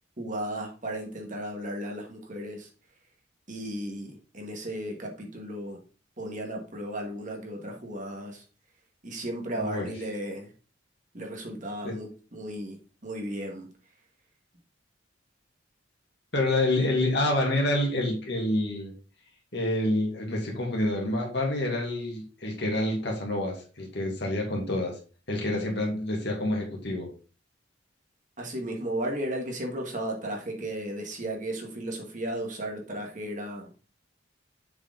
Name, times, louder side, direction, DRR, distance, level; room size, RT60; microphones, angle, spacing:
voice 1, 0.2-2.7 3.5-5.8 6.2-8.4 9.0-10.5 11.1-13.7 28.4-33.7, right 1 dB, 40° right, 1 dB, 1.7 m, -35 dB
voice 2, 9.6-9.9 11.8-12.0 16.3-18.9 19.5-25.0 25.3-27.1, left 1 dB, 60° left, 0 dB, 2.3 m, -27 dB
7.1 x 4.9 x 3.8 m, 0.36 s
head